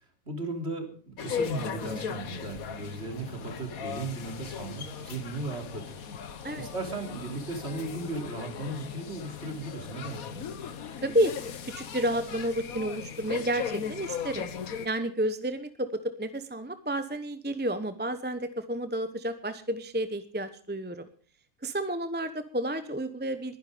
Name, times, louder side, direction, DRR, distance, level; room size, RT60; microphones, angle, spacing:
voice 1, 0.3-6.0 6.6-10.4, right 2 dB, 50° right, 4 dB, 3.6 m, -36 dB
sound 1, 1.2-14.9, left 7 dB, 90° left, 1.6 m, -38 dB
voice 2, 11.0-11.3 11.6-14.5 14.8-21.1 21.6-23.6, right 1 dB, 10° right, 11 dB, 0.9 m, -31 dB
21.0 x 10.5 x 5.1 m, 0.44 s
omnidirectional pair, 1.4 m